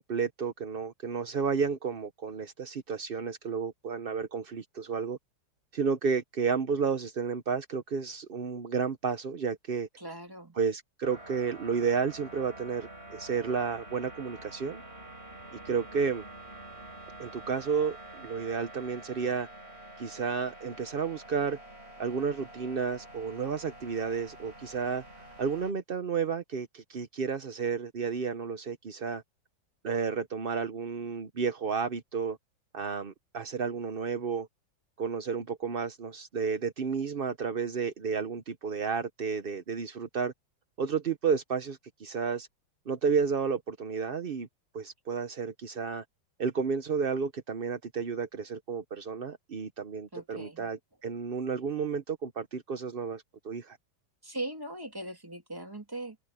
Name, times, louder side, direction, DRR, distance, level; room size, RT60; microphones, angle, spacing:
voice 1, 0.0-5.2 5.7-9.9 10.5-14.8 15.5-16.2 17.2-19.5 20.0-21.6 22.0-29.2 29.8-32.4 32.7-34.5 35.0-40.3 40.8-42.5 42.9-44.5 44.7-46.0 46.4-53.8, right 6 dB, 50° right, 0.6 m, -32 dB
voice 2, 10.0-10.6 50.1-50.7 54.2-56.2, right 1 dB, 10° right, 2.4 m, -39 dB
sound 1, 11.0-25.7, right 1 dB, 30° right, 6.5 m, -48 dB
omnidirectional pair, 2.2 m